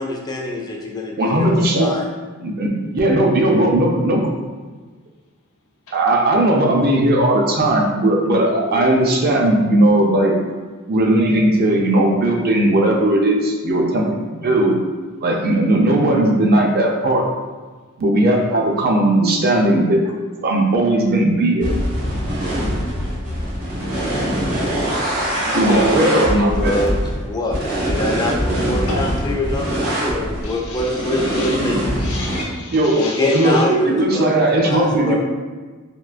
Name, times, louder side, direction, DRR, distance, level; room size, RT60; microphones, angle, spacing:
voice 1, 0.0-2.0 8.7-8.8 25.6-27.6 27.9-29.7 30.1-31.9 32.9-34.2 34.6-35.2, left 2 dB, 20° left, 0 dB, 0.3 m, -25 dB
voice 2, 1.2-2.0 2.4-4.3 5.9-10.4 10.9-14.8 15.2-17.3 18.0-20.0 20.4-21.7 25.5-26.8 32.7-35.2, right 1 dB, 45° right, 0 dB, 0.5 m, -17 dB
sound 1, 21.6-32.4, equal, 65° right, 1.3 m, -23 dB
voice 3, 24.0-24.3 25.4-25.8 28.9-29.1 30.4-31.6 32.0-33.7, left 2 dB, 80° left, -3 dB, 0.6 m, -31 dB
3.6 x 2.5 x 2.4 m, 1.4 s
head